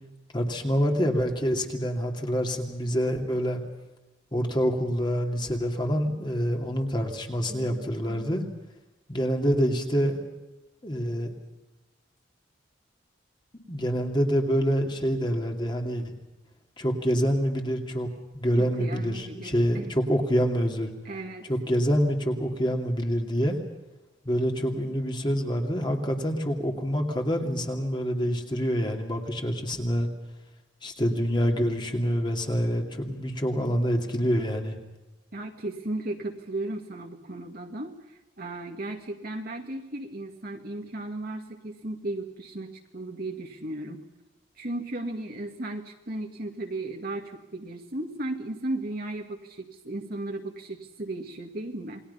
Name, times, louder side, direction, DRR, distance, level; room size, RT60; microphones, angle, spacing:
voice 1, 0.3-3.6 4.3-8.4 9.1-10.2 10.8-11.3 13.7-16.1 16.8-18.1 18.3-20.9 21.5-23.6 24.2-30.1 30.8-34.8, equal, 25° left, 3 dB, 2.7 m, -26 dB
voice 2, 7.5-8.5 18.6-19.9 21.0-21.5 35.3-44.1 44.6-52.0, right 2 dB, 50° right, 2 dB, 2.0 m, -35 dB
28.5 x 21.0 x 5.7 m, 1.0 s
head